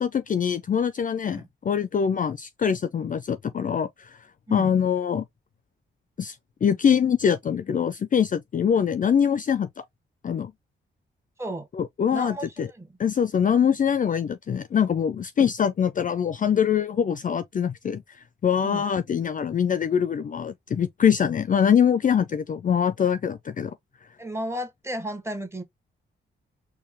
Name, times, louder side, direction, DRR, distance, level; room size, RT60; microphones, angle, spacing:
voice 1, 0.0-3.9 4.5-5.2 6.2-6.4 6.6-9.7 10.2-10.5 11.8-12.7 13.0-18.0 18.4-23.7, left 8 dB, 40° left, 0.4 m, -23 dB
voice 2, 12.1-13.0 18.6-18.8 24.2-25.6, right 1 dB, 15° right, 1.2 m, -34 dB
4.4 x 2.2 x 3.4 m
cardioid pair, 90°, 21 cm